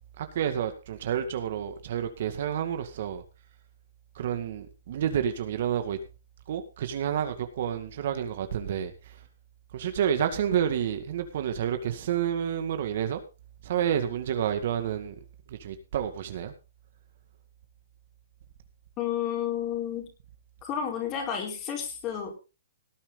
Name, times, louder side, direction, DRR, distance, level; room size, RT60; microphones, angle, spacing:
voice 1, 0.2-3.2 4.2-6.0 6.5-9.1 9.7-13.2 13.6-15.2 15.5-16.5, right 9 dB, 55° right, 8 dB, 2.1 m, -29 dB
voice 2, 19.0-20.1 20.6-22.3, left 9 dB, 25° left, 2 dB, 4.7 m, -31 dB
18.5 x 8.9 x 4.1 m, 0.31 s
hypercardioid pair, 150°, 0 cm